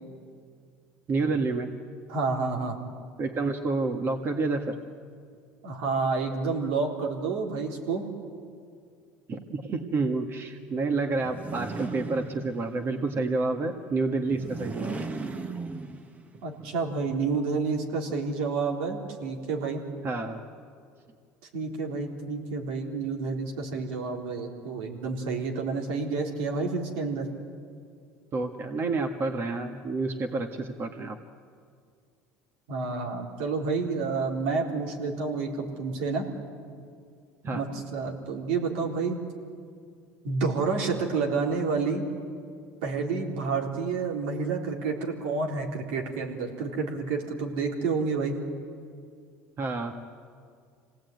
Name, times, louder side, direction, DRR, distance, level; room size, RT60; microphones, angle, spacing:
voice 1, 1.1-1.7 3.2-4.8 9.3-15.1 20.0-20.4 28.3-31.2 37.4-37.6 49.6-49.9, right 3 dB, 40° right, 6 dB, 1.7 m, -29 dB
voice 2, 2.1-2.8 5.6-8.1 16.4-19.8 21.5-27.3 32.7-36.3 37.5-39.2 40.2-42.0 42.8-48.4, right 4 dB, 80° right, 1 dB, 3.8 m, -29 dB
sound 1, 11.1-12.9 14.2-16.4, right 3 dB, 25° right, 1.4 m, -37 dB
26.0 x 18.0 x 9.4 m, 2.2 s
supercardioid pair, 90°, 6 cm